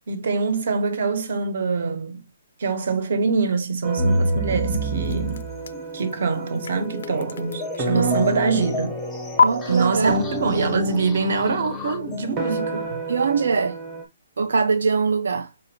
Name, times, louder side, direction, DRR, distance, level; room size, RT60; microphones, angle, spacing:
voice 1, 0.1-2.2 2.6-5.4 5.9-9.0 9.7-12.9, right 4 dB, 50° right, 0.9 m, -24 dB
sound 1, 3.8-14.0, right 1 dB, 15° right, 0.9 m, -31 dB
sound 2, 4.0-12.5, equal, 5° left, 0.6 m, -30 dB
sound 3, 4.9-8.7 9.4-9.5, left 5 dB, 55° left, 0.3 m, -28 dB
voice 2, 7.9-8.2 9.4-10.2 13.1-13.8 14.4-15.5, right 5 dB, 80° right, 0.4 m, -22 dB
5.1 x 2.5 x 2.8 m
hypercardioid pair, 175°, 0 cm